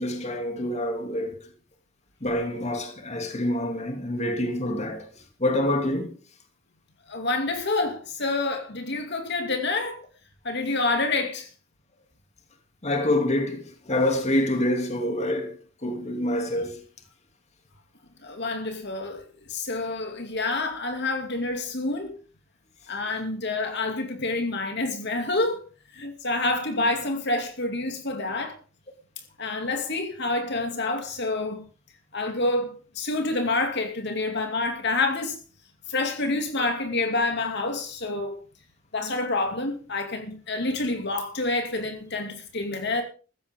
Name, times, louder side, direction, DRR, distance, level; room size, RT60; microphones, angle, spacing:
voice 1, 0.0-1.4 2.2-5.1 5.4-6.1 12.8-15.6 15.8-16.8, left 1 dB, 35° left, 2.7 m, -26 dB
voice 2, 7.1-10.0 10.4-11.5 18.2-22.2 22.9-25.6 25.9-28.6 29.4-31.6 32.1-35.4 35.9-38.4 38.9-43.0, left 2 dB, 55° left, 2.6 m, -28 dB
15.0 x 14.5 x 3.7 m
head